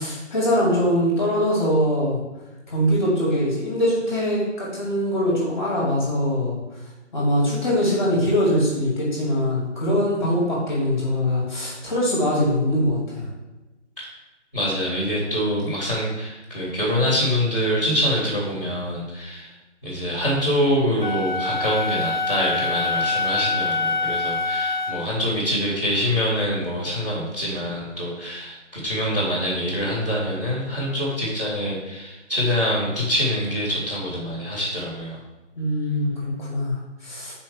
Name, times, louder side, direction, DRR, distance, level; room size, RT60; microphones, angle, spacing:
voice 1, 0.0-2.2 2.7-6.6 7.1-13.3 35.6-37.3, equal, 20° left, -6 dB, 1.7 m, -22 dB
voice 2, 14.5-19.5 19.8-35.2, equal, 10° right, -15 dB, 1.7 m, -25 dB
Wind instrument woodwind instrument, 21.0-25.1, left 3 dB, 40° left, 0.5 m, -25 dB
6.3 x 4.4 x 6.1 m, 1.1 s
figure-of-eight pair, 170°, 36 cm